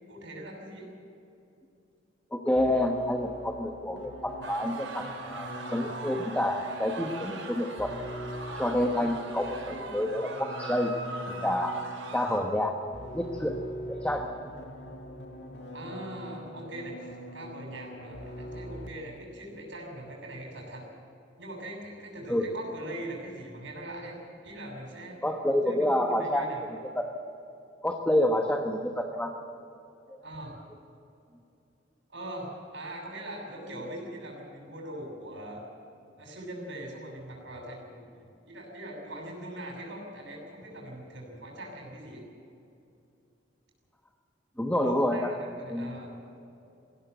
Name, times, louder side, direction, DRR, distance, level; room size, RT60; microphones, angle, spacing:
voice 1, 0.1-0.9 8.9-9.1 15.7-20.8 21.4-24.2 24.4-25.2 25.6-26.7 30.2-30.6 32.1-35.6 36.2-42.2 44.8-46.1, right 1 dB, 70° right, -2 dB, 6.2 m, -41 dB
voice 2, 2.3-7.9 8.5-10.9 11.3-11.7 12.1-12.7 13.1-13.6 13.9-14.3 22.3-22.4 25.2-26.5 26.9-27.0 27.8-29.3 44.6-45.3 45.7-45.9, left 1 dB, 10° left, 3 dB, 1.2 m, -28 dB
sound 1, 2.6-19.2, equal, 65° left, 1.8 m, -43 dB
sound 2, 4.4-12.4, right 2 dB, 85° right, 4.6 m, -41 dB
20.5 x 16.5 x 8.0 m, 2.7 s
head